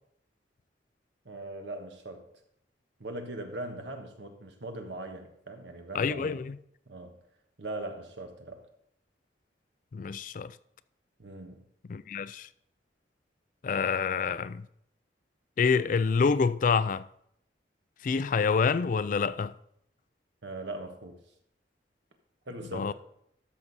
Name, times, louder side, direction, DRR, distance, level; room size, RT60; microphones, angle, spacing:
voice 1, 1.2-2.3 3.0-6.4 6.9-7.2 7.6-8.7 11.2-11.6 20.4-21.2 22.5-22.9, right 1 dB, 85° right, 1.4 m, -40 dB
voice 2, 5.9-6.6 9.9-10.5 11.9-12.5 13.6-14.7 15.6-17.0 18.0-19.5 22.7-22.9, left 5 dB, 45° left, 0.3 m, -27 dB
13.0 x 6.0 x 4.1 m
head